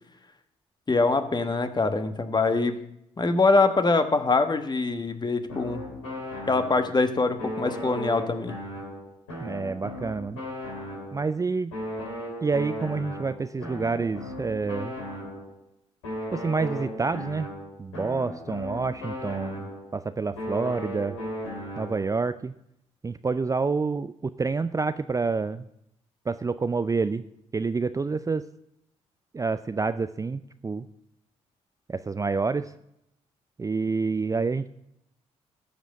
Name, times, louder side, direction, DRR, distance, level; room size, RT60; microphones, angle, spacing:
voice 1, 0.9-2.8 3.2-5.9 6.5-8.6, left 3 dB, 25° left, 9 dB, 1.3 m, -24 dB
sound 1, 5.5-7.0 7.4-11.3 11.7-15.6 16.0-20.0 20.4-22.2, left 1 dB, 90° left, 2.5 m, -36 dB
voice 2, 9.4-10.4 11.1-11.7 12.4-14.9 16.3-17.5 17.8-21.2 21.8-22.5 23.0-25.7 26.3-27.2 27.5-28.5 29.3-30.9 31.9-32.7 33.6-34.7, right 4 dB, 20° right, 12 dB, 0.5 m, -28 dB
13.0 x 5.1 x 6.6 m, 0.77 s
hypercardioid pair, 45°, 16 cm